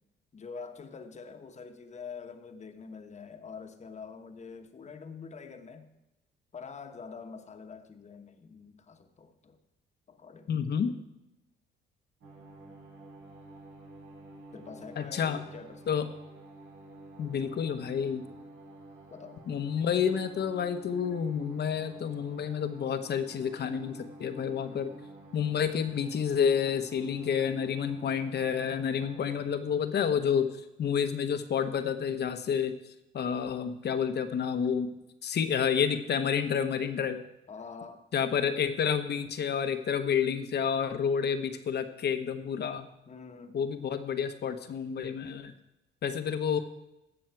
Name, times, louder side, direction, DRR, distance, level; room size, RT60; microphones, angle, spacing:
voice 1, 0.3-5.9 6.5-9.6 10.1-10.6 14.5-16.1 19.1-19.4 37.5-38.0 43.1-43.6, left 5 dB, 35° left, 6 dB, 1.1 m, -45 dB
voice 2, 10.5-10.9 15.0-15.4 15.9-16.1 17.2-18.2 19.5-24.9 25.3-34.9 35.2-37.2 38.1-42.9 43.5-45.5 46.0-46.6, left 7 dB, 55° left, 9 dB, 1.0 m, -29 dB
sound 1, 12.2-29.4, right 1 dB, 80° right, 4.2 m, -50 dB
16.5 x 6.3 x 4.6 m, 0.92 s
cardioid pair, 90°, 20 cm